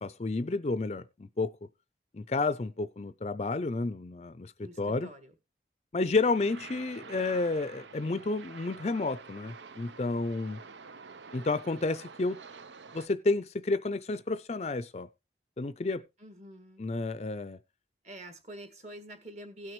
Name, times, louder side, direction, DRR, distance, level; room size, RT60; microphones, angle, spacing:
voice 1, 0.0-1.6 2.1-4.5 4.8-5.1 5.9-10.6 11.3-12.4 12.9-15.1 15.6-16.0 16.8-17.6, left 3 dB, 35° left, 0.5 m, -31 dB
voice 2, 4.6-5.3 16.2-16.8 18.0-19.7, right 1 dB, 40° right, 1.7 m, -46 dB
sound 1, 6.3-13.1, right 5 dB, 85° right, 0.7 m, -48 dB
17.0 x 6.0 x 3.0 m
head